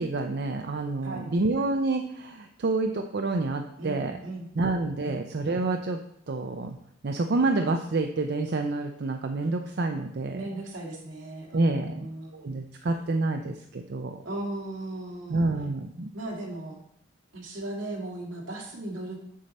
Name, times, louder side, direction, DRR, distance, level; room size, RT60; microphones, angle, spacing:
voice 1, 0.0-4.2 4.6-6.0 6.3-6.8 7.0-10.4 11.5-12.1 12.3-14.2 15.3-16.1, right 3 dB, 55° right, 5 dB, 0.5 m, -28 dB
voice 2, 3.8-5.3 10.3-12.4 14.2-15.4 16.1-16.8 17.3-19.2, right 2 dB, 80° right, -1 dB, 2.2 m, -37 dB
7.4 x 6.6 x 4.2 m, 0.74 s
head